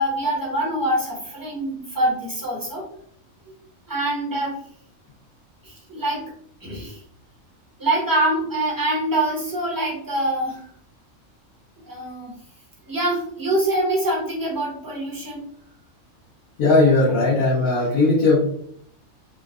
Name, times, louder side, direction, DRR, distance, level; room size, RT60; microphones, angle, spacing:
voice 1, 0.0-2.8 3.9-4.6 5.6-6.3 6.6-7.0 7.8-10.7 11.8-12.3 12.9-15.4, right 1 dB, 15° right, -4 dB, 0.9 m, -24 dB
voice 2, 16.6-18.5, left 2 dB, 85° left, -7 dB, 1.3 m, -18 dB
3.7 x 2.2 x 2.4 m, 0.67 s
omnidirectional pair, 1.4 m